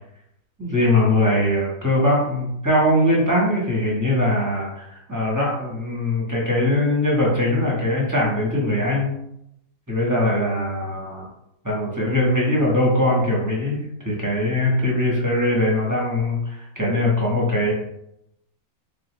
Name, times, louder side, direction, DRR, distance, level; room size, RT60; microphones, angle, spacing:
voice 1, 0.6-9.2 9.9-11.3 11.6-13.8 14.0-17.7, left 1 dB, 15° right, -4 dB, 0.8 m, -21 dB
3.8 x 3.2 x 3.0 m, 0.78 s
omnidirectional pair, 1.5 m